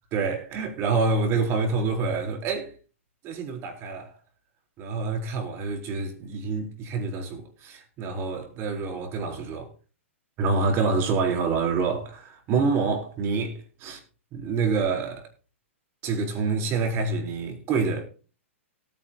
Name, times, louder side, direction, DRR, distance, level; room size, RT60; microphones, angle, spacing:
voice 1, 0.1-2.7 3.2-4.1 4.8-9.7 10.4-14.0 14.3-15.2 16.0-18.0, right 4 dB, 35° right, 3.9 m, -27 dB
18.0 x 9.3 x 2.9 m
hypercardioid pair, 120°, 7 cm